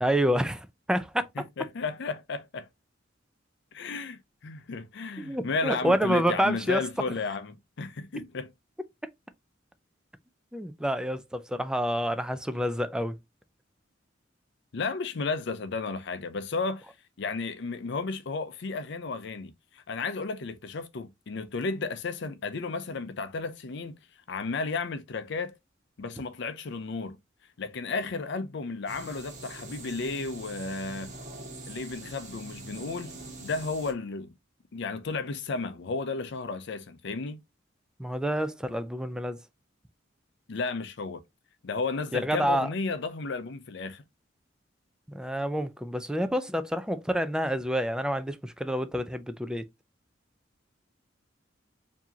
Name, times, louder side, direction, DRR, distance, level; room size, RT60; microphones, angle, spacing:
voice 1, 0.0-1.3 5.2-6.8 10.5-13.2 38.0-39.4 42.1-42.7 45.1-49.7, equal, 5° right, 0.4 m, -28 dB
voice 2, 1.4-2.7 3.7-8.5 14.7-24.0 24.3-25.5 26.0-27.2 27.6-31.1 31.7-33.1 33.4-34.3 34.7-37.4 40.5-41.2 41.6-44.0, left 4 dB, 65° left, 0.5 m, -33 dB
sound 1, 28.9-33.9, right 2 dB, 40° right, 1.5 m, -44 dB
4.7 x 2.8 x 2.8 m
head